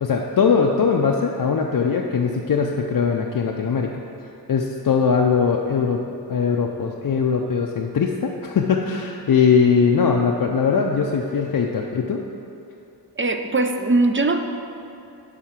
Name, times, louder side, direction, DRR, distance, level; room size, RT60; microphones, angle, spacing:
voice 1, 0.0-3.9 4.5-6.0 6.3-12.2, left 6 dB, 55° left, 0 dB, 0.6 m, -20 dB
voice 2, 13.2-14.4, right 2 dB, 30° right, 6 dB, 0.6 m, -20 dB
10.5 x 3.8 x 5.8 m, 2.7 s
wide cardioid pair, 90°, 41 cm